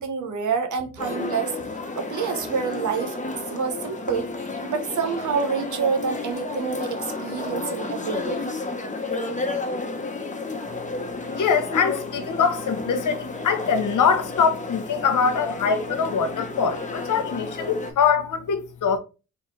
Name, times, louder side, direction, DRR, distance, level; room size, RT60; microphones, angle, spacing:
voice 1, 0.0-1.5 2.0-3.2 3.5-4.3 4.6-8.4, right 6 dB, 65° right, 1.0 m, -27 dB
sound 1, 1.0-17.9, left 3 dB, 25° left, 1.0 m, -31 dB
voice 2, 11.3-19.0, left 6 dB, 75° left, 0.9 m, -23 dB
3.6 x 3.2 x 3.2 m
supercardioid pair, 45°, 31 cm